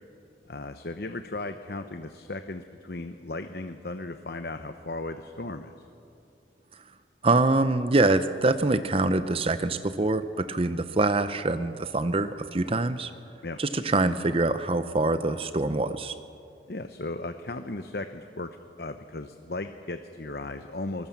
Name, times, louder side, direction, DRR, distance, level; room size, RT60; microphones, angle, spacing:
voice 1, 0.5-5.7 10.8-11.0 13.4-13.6 16.7-18.5 18.8-21.1, left 2 dB, 60° left, 8 dB, 0.9 m, -36 dB
voice 2, 7.2-13.1 13.6-16.2, right 2 dB, 30° right, 11 dB, 0.7 m, -25 dB
24.0 x 20.5 x 7.3 m, 2.6 s
head